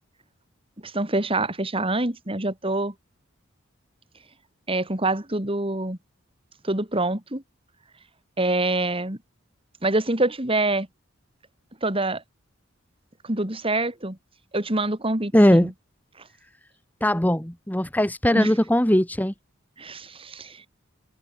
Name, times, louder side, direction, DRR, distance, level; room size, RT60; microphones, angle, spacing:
voice 1, 0.8-2.9 4.7-6.0 6.6-7.4 8.4-9.2 9.8-10.9 11.8-12.2 13.2-14.2 14.5-15.7 18.3-18.5 19.8-20.6, right 2 dB, 30° right, 3.1 m, -25 dB
voice 2, 15.3-15.7 17.0-19.3, equal, 10° left, 1.7 m, -19 dB
head